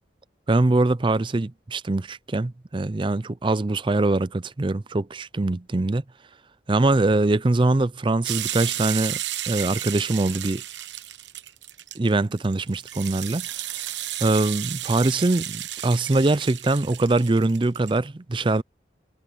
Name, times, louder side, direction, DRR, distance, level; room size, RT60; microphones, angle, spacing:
voice 1, 0.5-6.0 6.7-9.2 9.5-10.6 12.0-13.5 14.2-18.6, right 2 dB, 25° right, 0.5 m, -23 dB
sound 1, 8.2-18.0, right 13 dB, 75° right, 1.1 m, -33 dB
head